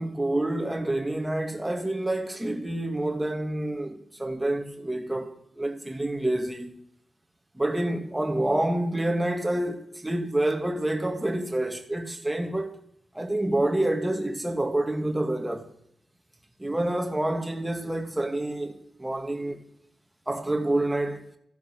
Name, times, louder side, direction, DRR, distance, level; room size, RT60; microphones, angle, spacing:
voice 1, 0.0-6.7 7.6-12.7 13.1-15.7 16.6-19.6 20.3-21.2, right 1 dB, 10° right, 1.9 m, -28 dB
15.0 x 11.0 x 6.2 m
wide cardioid pair, 165°, 0 cm